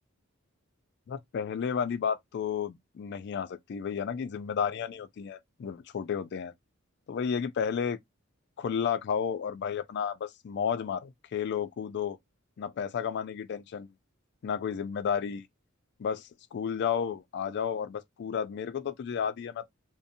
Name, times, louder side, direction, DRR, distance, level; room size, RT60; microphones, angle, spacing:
voice 1, 1.1-6.5 7.1-8.0 8.6-12.2 12.6-13.9 14.4-15.5 16.0-19.7, left 7 dB, 55° left, 0.3 m, -32 dB
2.5 x 2.1 x 2.6 m
head